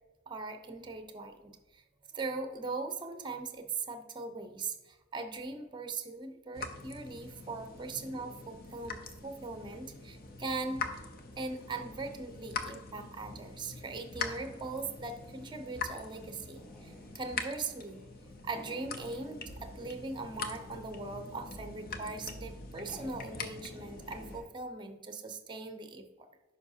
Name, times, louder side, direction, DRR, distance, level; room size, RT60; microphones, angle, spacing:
voice 1, 0.3-1.8 2.1-10.9 11.4-18.0 18.4-26.1, right 3 dB, 20° right, 7 dB, 0.6 m, -40 dB
sound 1, 6.5-24.4, left 4 dB, 45° left, 0.7 m, -43 dB
sound 2, 15.4-20.0 20.3-21.1 21.7-22.2 22.5-22.6 22.8-24.5, equal, 5° left, 1.1 m, -57 dB
9.5 x 5.6 x 2.8 m, 1.2 s
head